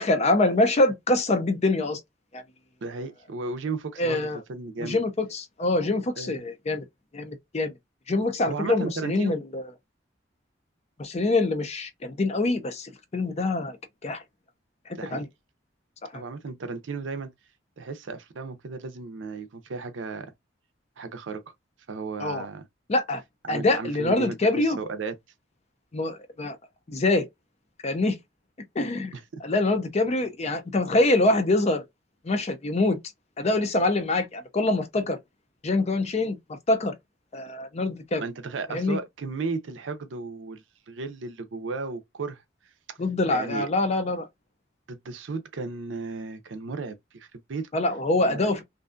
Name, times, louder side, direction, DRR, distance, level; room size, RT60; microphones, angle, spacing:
voice 1, 0.0-2.0 2.3-2.4 4.0-4.4 4.8-6.8 7.1-7.7 8.1-9.6 11.0-13.8 14.0-14.2 15.1-15.3 16.1-16.2 22.2-22.5 22.9-23.2 23.5-24.8 25.9-26.6 26.9-27.3 27.8-28.2 28.8-29.1 29.4-31.8 32.2-33.0 33.4-35.2 35.6-36.4 36.7-36.9 37.3-38.2 38.7-39.0 43.0-44.3 47.7-48.6, left 2 dB, 35° left, 0.5 m, -25 dB
voice 2, 2.8-5.0 6.2-6.4 8.5-9.4 14.9-15.3 16.1-17.3 17.8-20.3 21.0-21.4 21.9-22.6 23.4-25.1 29.1-29.4 38.2-42.4 42.9-43.0 43.3-43.7 44.9-47.7 48.2-48.6, right 4 dB, 80° right, 0.5 m, -35 dB
2.5 x 2.2 x 2.4 m
head